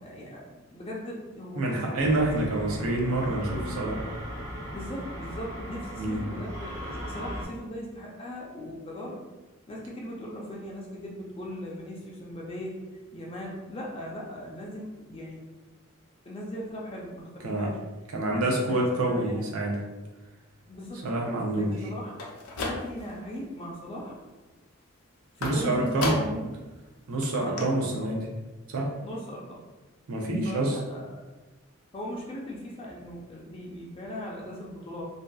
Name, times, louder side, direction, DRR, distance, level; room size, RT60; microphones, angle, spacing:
voice 1, 0.0-2.6 4.7-9.2 9.7-12.7 13.1-15.4 16.3-17.8 18.3-19.4 20.7-21.1 21.6-22.2 22.6-24.2 25.4-26.5 27.3-28.2 29.0-29.6 30.4-31.0 31.9-35.0, equal, 25° left, -3 dB, 0.4 m, -38 dB
voice 2, 1.6-4.0 6.0-6.2 17.4-17.7 18.1-19.8 21.0-21.9 25.4-26.2 27.1-28.3 28.7-28.9 30.1-30.8, right 1 dB, 90° right, -1 dB, 0.6 m, -27 dB
sound 1, 2.0-7.5, equal, 55° right, 1.2 m, -37 dB
sound 2, 22.1-23.2 23.6-24.1 25.4-26.5 26.9-27.0 27.2-27.3 27.6-27.7, left 2 dB, 90° left, 0.5 m, -34 dB
2.6 x 2.3 x 2.2 m, 1.2 s
head